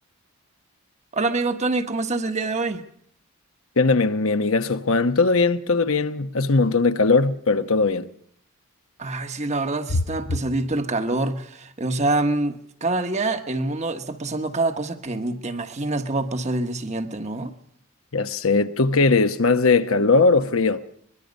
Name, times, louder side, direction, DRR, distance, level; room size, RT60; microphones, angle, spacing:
voice 1, 1.1-2.8 9.0-17.5, right 2 dB, 30° right, 1.2 m, -26 dB
voice 2, 3.8-8.1 9.9-10.0 18.1-20.8, left 3 dB, 70° left, 1.0 m, -19 dB
23.0 x 21.5 x 5.3 m
head